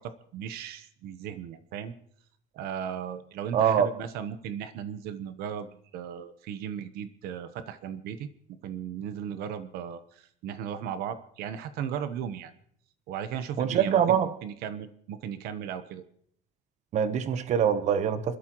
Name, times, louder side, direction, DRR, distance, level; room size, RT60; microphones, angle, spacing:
voice 1, 0.0-1.9 2.5-8.3 8.6-12.5 13.1-16.0, right 8 dB, 75° right, 1.0 m, -36 dB
voice 2, 3.5-3.9 13.6-14.3 16.9-18.4, right 8 dB, 45° right, 1.0 m, -24 dB
28.5 x 12.5 x 3.0 m
cardioid pair, 150°, 16 cm